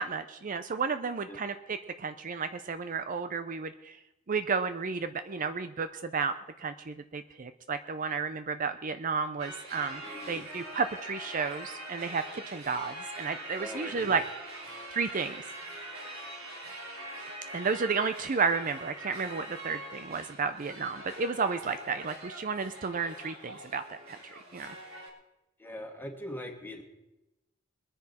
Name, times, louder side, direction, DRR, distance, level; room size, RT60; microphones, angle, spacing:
voice 1, 0.0-4.0 4.3-6.3 6.6-10.0 10.3-14.2 14.9-15.4 17.5-24.2 24.5-24.7, right 5 dB, 40° right, 10 dB, 0.5 m, -32 dB
sound 1, 9.4-25.1, right 1 dB, 85° right, 3.4 m, -43 dB
voice 2, 10.0-10.4 13.6-14.2 25.6-26.8, left 1 dB, 10° left, 2 dB, 1.8 m, -41 dB
22.0 x 10.0 x 4.3 m, 0.98 s
head